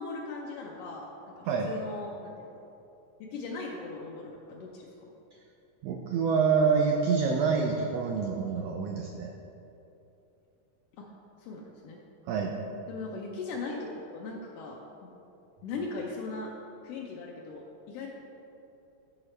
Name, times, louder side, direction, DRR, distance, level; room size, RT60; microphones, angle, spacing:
voice 1, 0.0-2.5 3.2-5.1 10.9-11.1 11.4-12.0 12.9-15.1 15.6-16.5 16.8-18.1, left 3 dB, 85° left, -2 dB, 1.4 m, -39 dB
voice 2, 5.8-9.3 12.3-12.5, right 5 dB, 90° right, 2 dB, 1.4 m, -27 dB
12.5 x 4.8 x 3.2 m, 2.9 s
omnidirectional pair, 3.5 m